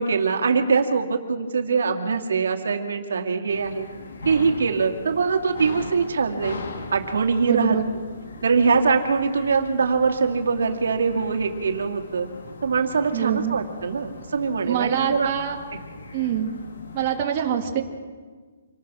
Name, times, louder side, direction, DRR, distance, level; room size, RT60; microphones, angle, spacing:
voice 1, 0.0-3.9 4.3-6.6 6.9-7.8 8.4-12.3 12.6-15.3, right 5 dB, 80° right, 4 dB, 2.3 m, -23 dB
sound 1, 3.5-17.2, left 3 dB, 70° left, 3.5 m, -40 dB
voice 2, 7.4-7.8 13.1-13.6 14.6-15.6 16.1-16.5 16.9-17.8, right 9 dB, 30° right, 1 dB, 2.3 m, -25 dB
26.5 x 19.5 x 6.3 m, 1.5 s
hypercardioid pair, 170°, 0 cm